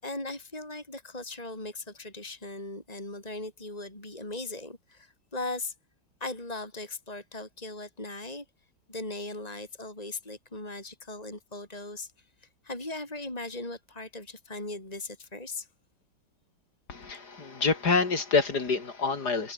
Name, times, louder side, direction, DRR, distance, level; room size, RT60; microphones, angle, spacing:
voice 1, 0.0-5.7 6.2-8.5 8.9-15.7, left 2 dB, 15° left, 5.6 m, -38 dB
voice 2, 16.9-19.5, left 4 dB, 45° left, 3.7 m, -27 dB
omnidirectional pair, 2.3 m